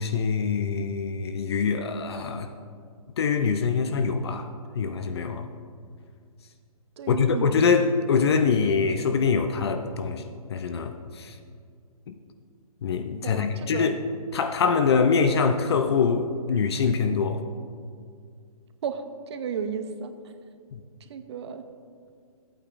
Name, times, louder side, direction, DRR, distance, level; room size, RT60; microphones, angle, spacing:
voice 1, 0.0-2.5 3.2-5.5 7.1-10.2 10.5-11.4 12.1-12.2 12.8-13.9 14.3-17.4 20.7-20.8, left 5 dB, 45° left, 7 dB, 0.4 m, -24 dB
voice 2, 7.0-7.5 13.2-13.9 18.8-19.0 19.3-20.1 21.1-21.6, right 7 dB, 45° right, 9 dB, 0.6 m, -33 dB
12.0 x 8.6 x 2.5 m, 2.1 s
hypercardioid pair, 160°, 19 cm